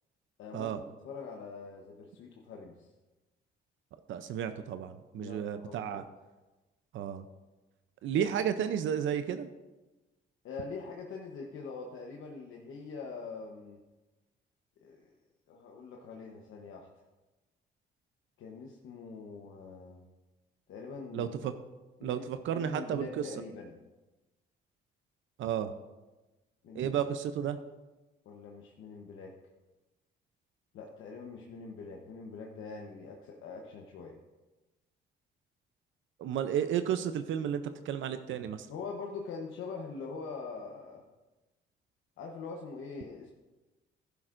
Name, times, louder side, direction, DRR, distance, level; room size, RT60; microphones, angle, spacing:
voice 1, 0.4-2.9 5.1-6.0 8.0-8.3 10.4-13.8 14.8-15.1 15.5-16.9 18.4-20.0 20.7-21.5 22.0-22.3 22.5-23.8 26.6-27.1 28.2-29.3 30.7-34.2 38.7-41.0 42.2-43.3, left 4 dB, 80° left, 0 dB, 1.0 m, -43 dB
voice 2, 4.1-6.0 6.9-7.2 8.0-9.5 21.1-21.5 22.0-23.1 25.4-25.7 26.7-27.6 36.2-38.7, right 9 dB, 75° right, 10 dB, 0.6 m, -32 dB
12.0 x 10.5 x 2.6 m, 1.1 s
cardioid pair, 90°, 20 cm